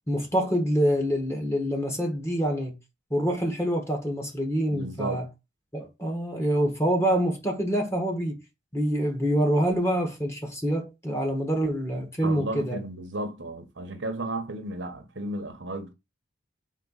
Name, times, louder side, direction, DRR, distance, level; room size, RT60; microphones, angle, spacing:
voice 1, 0.1-2.7 3.1-5.3 5.7-8.4 8.7-12.8, equal, 15° left, 1.6 m, -26 dB
voice 2, 4.7-5.2 12.2-15.9, right 2 dB, 70° right, 1.2 m, -34 dB
4.5 x 3.8 x 5.5 m
head